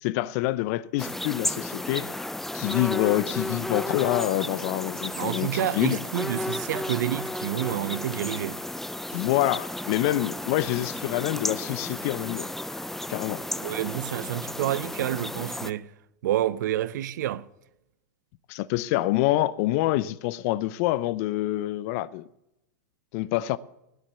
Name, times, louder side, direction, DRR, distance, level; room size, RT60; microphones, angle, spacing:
voice 1, 0.0-2.1 2.5-6.0 9.1-12.5 13.1-13.4 18.5-22.3 23.1-23.6, left 16 dB, 50° left, 0.7 m, -26 dB
sound 1, 1.0-15.7, left 1 dB, 5° left, 0.4 m, -33 dB
voice 2, 5.1-8.6 13.6-15.9 16.2-17.5, right 12 dB, 70° right, 0.9 m, -29 dB
18.0 x 10.5 x 7.0 m
hypercardioid pair, 115°, 10 cm